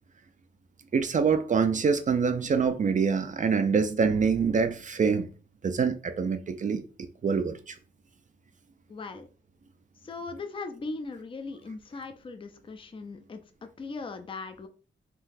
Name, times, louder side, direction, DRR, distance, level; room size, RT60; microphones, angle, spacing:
voice 1, 0.9-5.3 5.6-6.8 7.2-7.8, right 5 dB, 40° right, 0.4 m, -25 dB
voice 2, 8.9-9.3 10.0-14.7, left 3 dB, 25° left, 0.4 m, -39 dB
3.7 x 2.3 x 2.6 m
wide cardioid pair, 120°, 20 cm